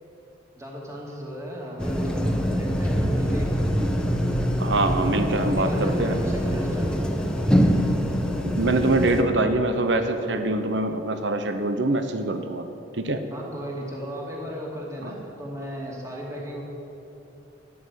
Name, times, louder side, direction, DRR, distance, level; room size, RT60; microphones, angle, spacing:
voice 1, 0.6-3.5 5.0-7.2 13.3-16.6, equal, 15° right, -3 dB, 2.6 m, -35 dB
sound 1, 1.8-9.2, equal, 5° left, 1.1 m, -24 dB
voice 2, 4.6-6.2 8.4-12.7 12.9-13.3 15.0-15.1, right 2 dB, 65° right, 8 dB, 1.0 m, -24 dB
13.5 x 11.0 x 8.3 m, 2.9 s
head